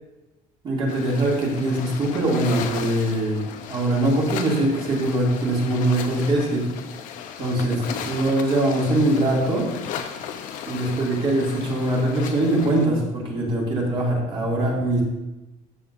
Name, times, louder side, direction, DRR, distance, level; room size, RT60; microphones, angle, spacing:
voice 1, 0.6-6.7 7.4-9.7 10.7-15.0, right 1 dB, 35° right, -3 dB, 2.5 m, -22 dB
sound 1, 0.9-12.9, left 8 dB, 65° left, 0.8 m, -35 dB
13.0 x 7.1 x 2.6 m, 1.0 s
cardioid pair, 160°, 14 cm